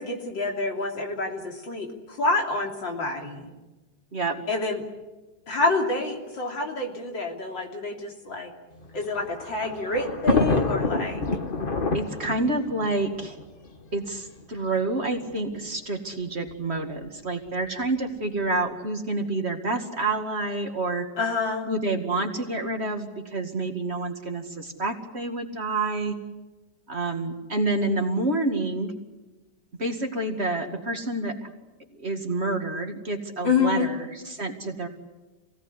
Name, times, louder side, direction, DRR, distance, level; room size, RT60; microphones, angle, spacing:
voice 1, 0.0-1.9 2.2-3.5 4.5-4.8 5.5-8.5 8.9-11.2 21.2-21.7 33.4-33.9, left 3 dB, 80° left, 2 dB, 3.8 m, -27 dB
voice 2, 4.1-4.4 11.9-13.4 13.9-21.1 21.7-26.1 26.9-28.9 29.8-31.5 31.9-34.9, right 2 dB, 35° right, 4 dB, 2.4 m, -28 dB
Thunder, 8.8-14.1 15.0-15.1 15.3-15.4 16.5-16.8, left 3 dB, 30° left, 1.5 m, -27 dB
26.5 x 18.0 x 9.7 m, 1.2 s
omnidirectional pair, 2.0 m